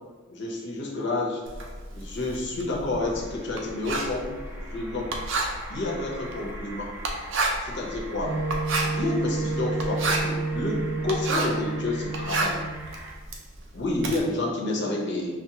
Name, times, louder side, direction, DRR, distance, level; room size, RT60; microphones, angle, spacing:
voice 1, 0.3-1.4 1.9-5.1 5.7-6.9 7.6-8.4 8.8-12.6 13.7-15.3, left 2 dB, 60° left, -2 dB, 0.8 m, -29 dB
Writing, 1.5-11.7 12.0-14.2, right 3 dB, 70° right, 0.5 m, -30 dB
sound 1, 3.0-13.2, right 1 dB, 10° right, 0.4 m, -44 dB
Wind instrument woodwind instrument, 8.2-12.9, right 3 dB, 90° right, 0.9 m, -30 dB
5.9 x 2.0 x 2.9 m, 1.3 s
head